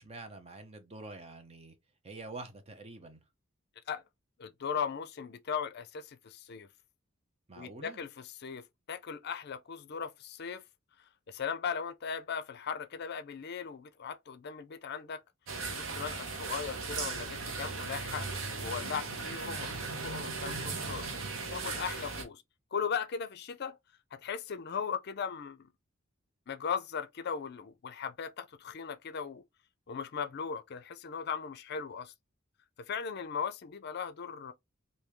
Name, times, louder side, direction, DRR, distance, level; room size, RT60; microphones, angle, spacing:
voice 1, 0.0-1.8 2.0-3.2 7.5-8.0, right 3 dB, 30° right, 0.7 m, -46 dB
voice 2, 4.4-6.7 7.6-10.6 11.3-15.2 15.7-18.3 18.6-19.8 20.0-21.2 21.5-22.4 22.7-23.8 24.1-25.7 26.5-29.4 29.9-32.1 32.8-34.5, left 6 dB, 55° left, 0.5 m, -38 dB
sound 1, 15.5-22.2, right 4 dB, 70° right, 0.9 m, -37 dB
3.5 x 2.7 x 3.0 m
head